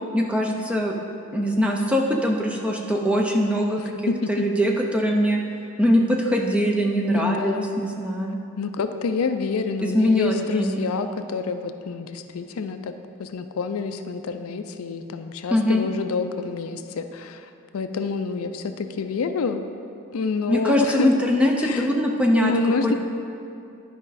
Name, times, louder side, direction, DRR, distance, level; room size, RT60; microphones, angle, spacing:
voice 1, 0.1-1.0 1.3-3.9 4.3-5.4 5.8-8.4 9.8-10.8 15.5-15.9 20.5-22.5 22.8-22.9, equal, 5° right, 0 dB, 0.5 m, -22 dB
voice 2, 3.9-4.4 7.1-7.8 8.6-12.9 13.2-17.5 17.7-19.6 20.1-21.1 21.6-21.9 22.4-22.9, left 4 dB, 80° left, 8 dB, 0.4 m, -27 dB
11.0 x 5.0 x 4.1 m, 2.6 s
head